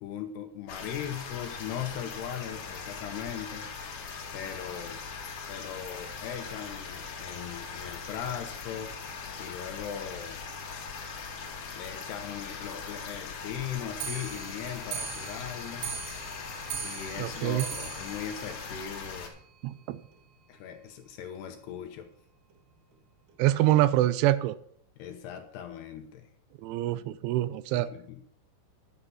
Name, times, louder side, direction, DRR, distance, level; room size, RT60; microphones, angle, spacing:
voice 1, 0.0-3.7 4.3-5.0 5.4-8.9 9.4-10.4 11.8-15.9 16.8-19.4 20.5-22.1 25.0-26.3 27.7-28.2, left 9 dB, 75° left, 6 dB, 2.7 m, -39 dB
sound 1, 0.7-19.3, left 5 dB, 55° left, 2.5 m, -40 dB
Clock, 13.9-19.4 19.8-19.9 20.1-20.2 20.5-20.6 20.9-21.0 21.7-21.8 22.5-22.6 23.3-23.4, right 7 dB, 65° right, 2.8 m, -40 dB
voice 2, 17.2-17.6 19.6-20.0 23.4-24.6 26.6-27.9, right 14 dB, 85° right, 15 dB, 3.0 m, -25 dB
11.5 x 8.1 x 5.6 m, 0.67 s
omnidirectional pair, 5.5 m